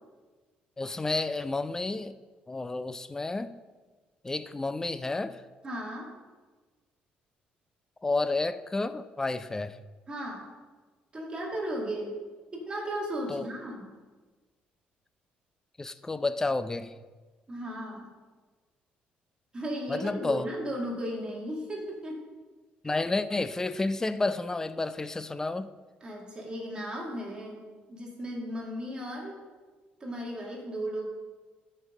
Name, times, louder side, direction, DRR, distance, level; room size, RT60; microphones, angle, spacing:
voice 1, 0.8-2.2 2.5-3.5 4.2-5.4 8.0-9.8 13.3-13.5 15.8-16.9 19.9-20.5 22.8-25.7, left 3 dB, 15° left, 13 dB, 0.4 m, -30 dB
voice 2, 5.6-6.1 10.1-10.5 11.1-12.2 12.5-13.9 17.5-18.1 19.5-22.3 26.0-27.6 27.9-29.3 30.0-31.1, equal, 25° right, -2 dB, 2.2 m, -35 dB
13.0 x 5.4 x 3.7 m, 1.3 s
cardioid pair, 110°, 4 cm